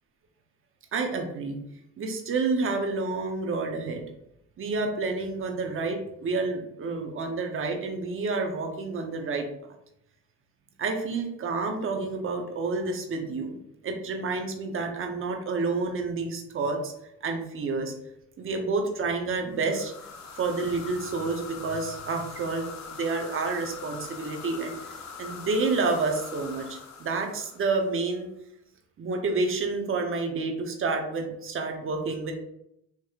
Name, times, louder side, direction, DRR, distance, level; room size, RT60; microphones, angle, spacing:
voice 1, 0.9-1.6 2.0-4.1 4.6-9.4 10.8-13.6 13.8-16.9 17.2-17.9 18.4-19.9 20.4-22.7 22.9-28.3 29.0-32.3, right 3 dB, 40° right, 4 dB, 0.8 m, -29 dB
sound 1, 19.5-28.1, left 5 dB, 60° left, 0.8 m, -42 dB
4.6 x 3.0 x 2.4 m, 0.79 s
cardioid pair, 100°, 31 cm